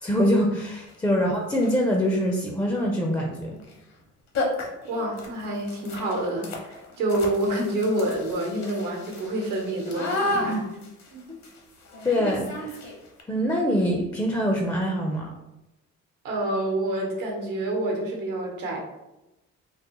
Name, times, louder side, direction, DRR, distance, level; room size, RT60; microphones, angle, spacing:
voice 1, 0.0-3.6 10.3-10.7 11.3-11.4 12.0-12.8 13.3-15.3, equal, 15° left, 0 dB, 0.4 m, -24 dB
sound 1, 0.9-1.0 1.5-1.9 3.6-3.8 4.0-4.1 4.3-13.2, left 2 dB, 60° left, 0.8 m, -33 dB
voice 2, 4.8-10.6 11.1-11.2 16.2-18.8, right 1 dB, 90° right, 0 dB, 1.0 m, -28 dB
3.7 x 2.0 x 2.9 m, 0.96 s
cardioid pair, 90°, 30 cm